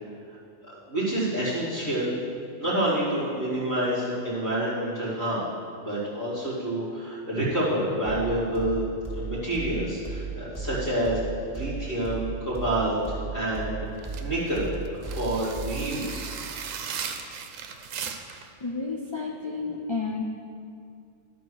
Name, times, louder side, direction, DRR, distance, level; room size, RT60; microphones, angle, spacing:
voice 1, 0.7-2.1 2.6-5.4 5.8-8.8 9.1-11.2 11.5-13.0 13.3-16.3, right 1 dB, 70° left, -11 dB, 2.9 m, -28 dB
sound 1, 8.1-16.1, right 5 dB, 5° right, 2.0 m, -36 dB
sound 2, 14.0-18.5, right 7 dB, 80° right, 1.1 m, -37 dB
voice 2, 18.6-20.2, left 4 dB, 45° left, 0 dB, 0.3 m, -31 dB
12.0 x 4.4 x 6.4 m, 2.4 s
omnidirectional pair, 1.4 m